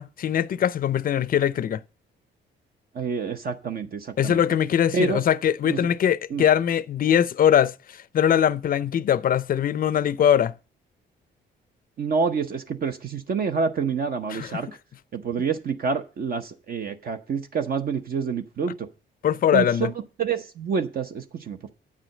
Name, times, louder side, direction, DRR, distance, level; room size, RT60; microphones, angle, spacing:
voice 1, 0.0-1.8 4.2-7.7 8.1-10.5 14.3-14.5 19.2-19.9, left 9 dB, 45° left, 0.5 m, -21 dB
voice 2, 2.9-4.4 4.9-5.2 5.6-5.8 6.3-6.4 12.0-14.7 15.1-18.9 19.5-19.9 20.2-21.7, right 5 dB, 50° right, 0.8 m, -27 dB
8.5 x 5.0 x 7.5 m
cardioid pair, 90°, 20 cm